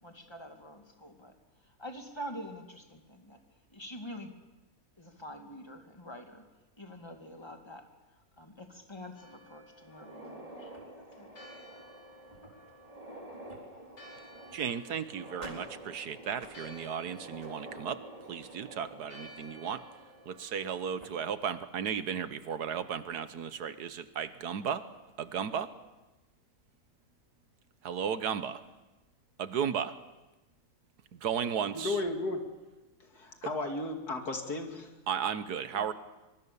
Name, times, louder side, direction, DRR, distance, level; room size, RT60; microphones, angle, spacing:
voice 1, 0.0-1.3 1.8-3.4 3.7-4.3 5.0-6.4 6.8-7.9 8.4-10.7 11.0-11.3, equal, 15° left, 4 dB, 2.4 m, -46 dB
Church bell, 9.2-21.3, equal, 90° left, 4.7 m, -56 dB
sound 1, 9.9-20.6 21.0-21.1 21.9-22.0 22.5-22.6 23.9-24.2, right 1 dB, 20° right, 4.2 m, -49 dB
voice 2, 14.5-18.0 18.3-19.8 20.3-24.8 25.2-25.7 27.8-28.6 29.4-29.9 31.1-32.0 35.1-35.9, right 7 dB, 75° right, 12 dB, 1.6 m, -34 dB
voice 3, 31.7-32.5 33.1-34.9 35.7-35.9, left 2 dB, 70° left, 4 dB, 3.0 m, -34 dB
24.5 x 23.5 x 7.0 m, 1.1 s
omnidirectional pair, 1.7 m